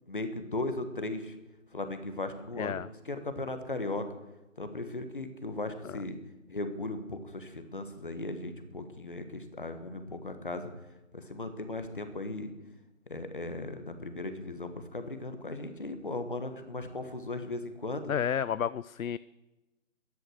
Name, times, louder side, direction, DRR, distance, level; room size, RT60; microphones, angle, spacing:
voice 1, 0.1-1.3 1.7-2.8 3.0-4.0 4.6-6.2 6.5-10.7 11.1-12.5 13.1-18.1, left 2 dB, 40° left, 8 dB, 1.5 m, -37 dB
voice 2, 2.6-2.9 5.8-6.0 18.1-19.2, left 8 dB, 85° left, 18 dB, 0.5 m, -31 dB
13.0 x 10.5 x 7.8 m, 1.0 s
figure-of-eight pair, 175°, 40 cm